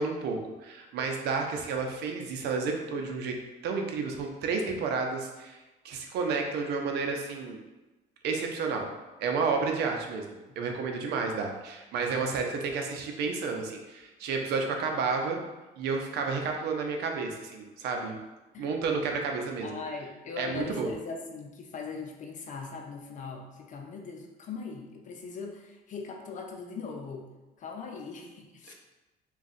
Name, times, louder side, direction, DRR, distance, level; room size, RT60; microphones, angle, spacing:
voice 1, 0.0-3.3 3.6-5.6 5.8-7.6 8.2-8.9 9.2-15.4 15.8-18.2 18.6-19.8 20.4-20.9 28.7-28.8, right 4 dB, 80° right, 3 dB, 0.6 m, -31 dB
voice 2, 19.6-27.3 27.6-28.7, left 5 dB, 50° left, 2 dB, 0.6 m, -40 dB
3.6 x 2.4 x 4.1 m, 1.1 s
cardioid pair, 110°, 17 cm